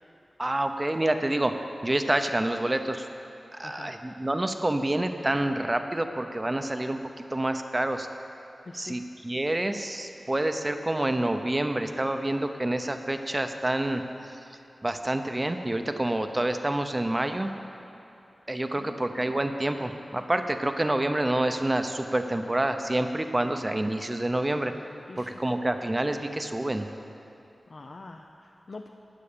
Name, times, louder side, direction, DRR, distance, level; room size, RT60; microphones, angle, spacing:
voice 1, 0.4-3.1 3.5-8.1 8.7-14.0 14.8-17.5 18.5-24.7 25.2-26.9, right 1 dB, 25° right, 7 dB, 0.7 m, -28 dB
voice 2, 3.6-4.0 8.6-9.0 18.7-19.2 25.1-25.4 27.7-28.9, left 3 dB, 55° left, 3 dB, 0.5 m, -45 dB
12.5 x 9.1 x 6.8 m, 2.8 s
wide cardioid pair, 95°, 0 cm